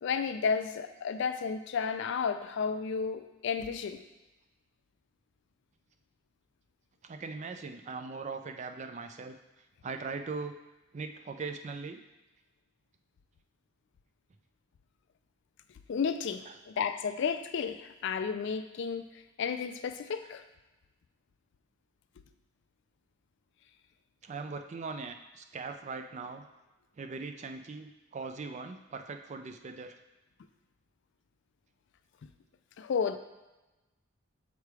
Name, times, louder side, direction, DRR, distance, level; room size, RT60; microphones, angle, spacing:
voice 1, 0.0-4.0 15.9-19.1 19.4-20.4 32.8-33.2, left 6 dB, 60° left, 9 dB, 0.3 m, -32 dB
voice 2, 7.0-9.4 9.8-10.6 10.9-12.0 24.2-26.4 27.0-29.9, right 4 dB, 35° right, 7 dB, 0.3 m, -40 dB
6.7 x 3.2 x 4.7 m, 1.1 s
head